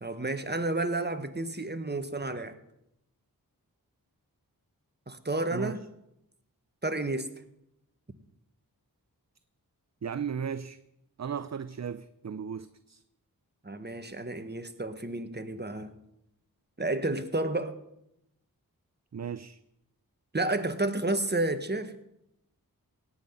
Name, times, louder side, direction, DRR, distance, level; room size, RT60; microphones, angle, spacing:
voice 1, 0.0-2.5 5.1-5.8 6.8-7.3 13.6-15.9 16.8-17.7 20.3-21.9, right 2 dB, 25° right, 1.5 m, -31 dB
voice 2, 10.0-10.8 11.2-13.0 19.1-19.6, right 7 dB, 45° right, 0.6 m, -36 dB
17.5 x 5.8 x 9.5 m
wide cardioid pair, 50°, 37 cm